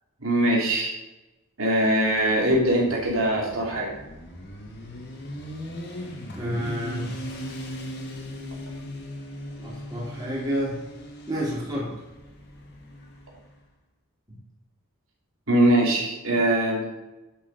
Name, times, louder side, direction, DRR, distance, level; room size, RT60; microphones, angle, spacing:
voice 1, 0.2-0.9 1.6-3.9 15.5-16.9, right 1 dB, 70° right, -3 dB, 2.8 m, -22 dB
Motorcycle, 1.8-13.5, equal, 50° left, 2.1 m, -39 dB
voice 2, 6.3-7.2 9.6-10.8 11.3-12.0 14.3-14.4, equal, 15° right, -6 dB, 3.4 m, -29 dB
10.5 x 6.9 x 5.3 m, 1.0 s
head